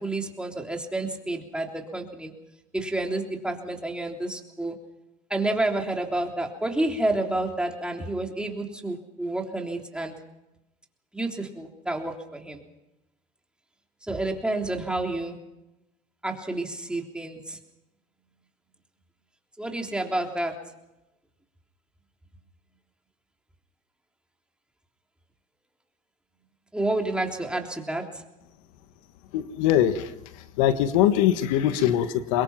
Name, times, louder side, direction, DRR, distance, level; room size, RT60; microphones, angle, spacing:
voice 1, 0.0-2.3 2.7-4.8 5.3-10.1 11.1-12.6 14.1-15.4 16.2-17.6 19.6-20.6 26.7-28.2, right 2 dB, 5° right, 2 dB, 3.4 m, -29 dB
voice 2, 29.3-30.1 30.6-32.4, left 11 dB, 80° left, 11 dB, 1.5 m, -22 dB
23.5 x 22.0 x 5.9 m, 0.95 s
supercardioid pair, 100°, 17 cm